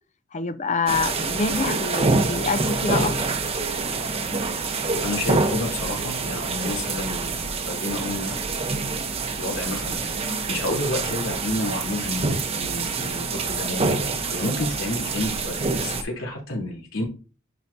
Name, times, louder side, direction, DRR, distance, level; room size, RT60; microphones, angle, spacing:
voice 1, 0.3-3.4, left 4 dB, 35° left, 0.6 m, -26 dB
sound 1, 0.9-16.0, right 3 dB, 30° right, 0.9 m, -26 dB
voice 2, 5.0-8.4 8.7-8.9 9.3-17.0, left 2 dB, 85° left, 3.5 m, -30 dB
10.0 x 4.8 x 2.7 m
head